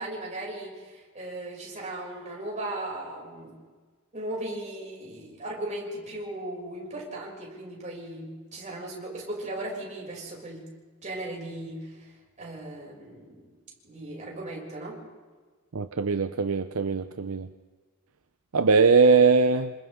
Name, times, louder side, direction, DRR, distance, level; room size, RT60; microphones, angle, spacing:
voice 1, 0.0-3.5 4.1-10.7 11.0-13.4 13.8-15.0, right 1 dB, 35° right, -3 dB, 6.9 m, -37 dB
voice 2, 15.7-17.5 18.5-19.7, right 4 dB, 70° right, 9 dB, 0.7 m, -21 dB
28.5 x 26.5 x 3.8 m, 1.4 s
head